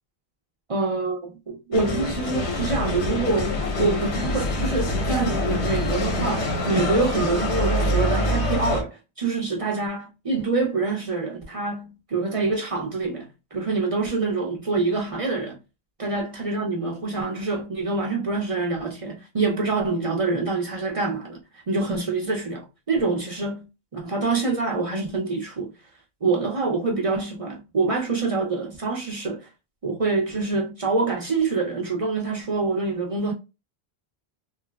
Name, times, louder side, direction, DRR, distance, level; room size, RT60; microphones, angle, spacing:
voice 1, 0.7-15.6 16.0-21.4 21.7-23.7 23.9-25.7 26.2-29.5 29.8-33.3, right 3 dB, 40° right, 0.6 m, -26 dB
sound 1, 1.7-8.8, left 1 dB, 90° left, 1.0 m, -25 dB
3.1 x 2.0 x 2.2 m
omnidirectional pair, 1.1 m